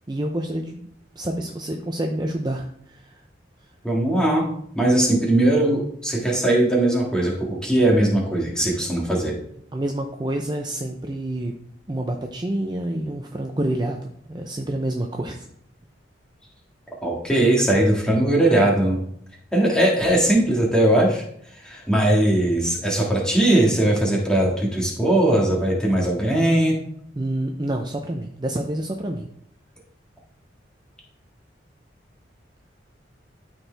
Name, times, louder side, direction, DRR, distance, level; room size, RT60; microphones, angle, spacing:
voice 1, 0.1-0.8 1.1-3.2 8.6-8.8 9.7-11.6 11.9-15.5 27.2-29.3, right 1 dB, 25° right, 3 dB, 0.5 m, -28 dB
voice 2, 3.8-4.4 4.7-9.3 17.0-19.0 19.5-21.2 21.6-26.8, right 1 dB, 5° left, -3 dB, 1.8 m, -19 dB
13.0 x 4.5 x 3.4 m, 0.68 s
head